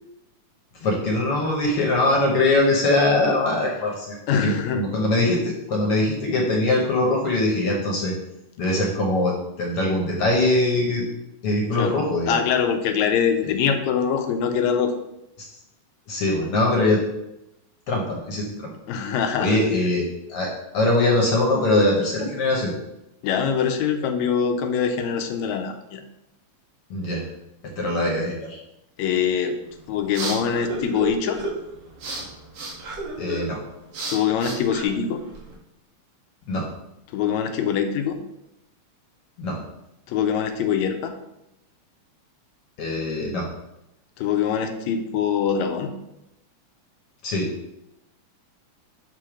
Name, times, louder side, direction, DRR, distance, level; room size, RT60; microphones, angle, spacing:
voice 1, 0.8-8.1 8.6-11.1 11.4-12.4 15.4-15.5 16.1-17.0 17.9-18.7 19.4-22.7 26.9-27.3 27.8-28.6 32.2-32.3 33.2-33.6 36.5-36.7 39.4-39.6 42.8-43.5 47.2-47.5, left 2 dB, 60° left, -1 dB, 1.8 m, -22 dB
voice 2, 4.3-4.8 11.8-12.0 12.3-14.9 18.9-19.6 23.2-26.0 29.0-29.6 29.9-31.4 34.1-35.2 37.1-38.2 40.1-41.1 44.2-45.9, left 7 dB, 75° left, 6 dB, 1.9 m, -23 dB
sound 1, 29.6-35.5, right 2 dB, 60° right, 2.2 m, -33 dB
7.7 x 3.7 x 5.0 m, 0.88 s
omnidirectional pair, 3.4 m